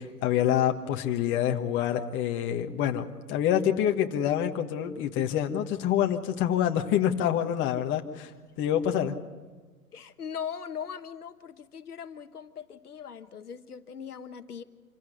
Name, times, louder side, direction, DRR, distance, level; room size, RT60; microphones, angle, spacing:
voice 1, 0.0-8.3 8.6-9.1, left 10 dB, 25° left, 4 dB, 1.5 m, -26 dB
voice 2, 9.9-14.6, left 7 dB, 80° left, 10 dB, 1.3 m, -40 dB
27.0 x 16.0 x 8.2 m, 1.4 s
hypercardioid pair, 120°, 45 cm